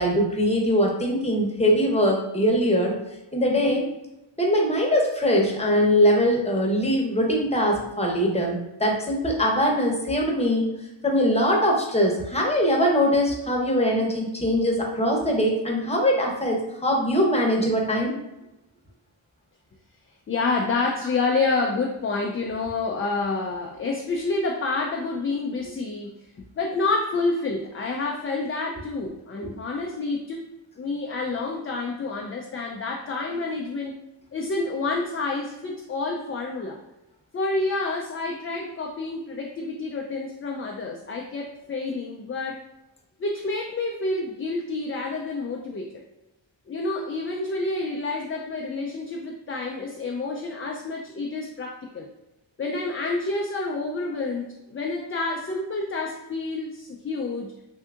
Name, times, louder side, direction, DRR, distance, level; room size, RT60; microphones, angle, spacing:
voice 1, 0.0-2.9 3.3-3.9 4.4-10.7 11.0-18.1 29.4-29.5, equal, 15° left, -1 dB, 0.8 m, -22 dB
voice 2, 20.3-26.1 26.6-30.5 30.8-33.9 34.3-36.8 37.3-42.6 43.2-46.0 46.7-52.1 52.6-57.5, left 3 dB, 30° left, 1 dB, 0.3 m, -28 dB
3.5 x 2.7 x 2.4 m, 0.95 s
cardioid pair, 45°, 46 cm